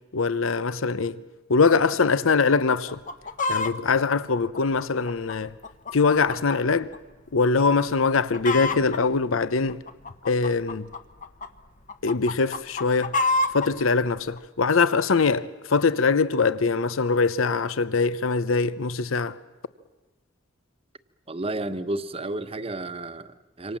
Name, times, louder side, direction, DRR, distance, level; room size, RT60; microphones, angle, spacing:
voice 1, 0.1-1.2 1.5-3.0 3.5-5.5 5.9-6.9 7.3-9.8 10.2-10.9 12.0-13.1 13.5-19.4, left 4 dB, 90° left, 0.8 m, -22 dB
Chicken rooster, 2.9-3.7 4.3-6.6 6.9-7.0 7.6-7.8 8.1-9.0 9.7-11.5 11.9-13.7 14.4-14.5, left 3 dB, 40° left, 1.1 m, -28 dB
voice 2, 21.3-23.8, right 2 dB, 30° right, 1.0 m, -32 dB
27.5 x 25.5 x 7.4 m
head